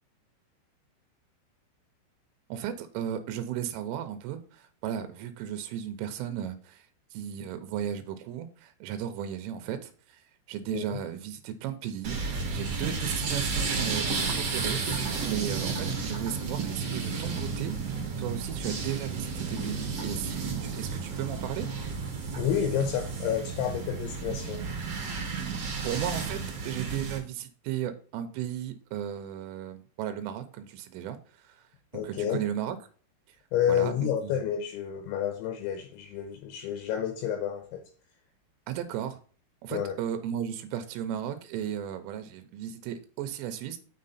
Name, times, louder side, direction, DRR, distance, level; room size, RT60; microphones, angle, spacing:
voice 1, 2.5-12.2 12.5-21.7 25.4-25.5 25.8-32.8 33.7-34.4 38.7-39.2 39.6-43.8, right 10 dB, 85° right, 3.2 m, -35 dB
sound 1, 12.0-27.2, right 4 dB, 55° right, 1.7 m, -32 dB
voice 2, 22.4-24.6 31.9-32.4 33.5-37.8 39.7-40.0, left 9 dB, 80° left, 3.0 m, -30 dB
6.9 x 6.4 x 4.1 m
omnidirectional pair, 5.7 m